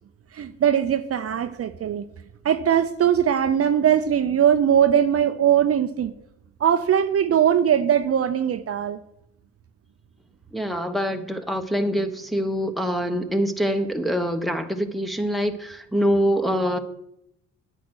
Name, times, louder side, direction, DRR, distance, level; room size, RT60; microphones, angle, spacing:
voice 1, 0.3-2.0 2.4-6.1 6.6-9.0, right 9 dB, 50° right, 9 dB, 0.7 m, -20 dB
voice 2, 10.5-16.8, equal, ahead, 5 dB, 1.2 m, -24 dB
9.3 x 9.2 x 6.4 m, 0.77 s
cardioid pair, 90°, 30 cm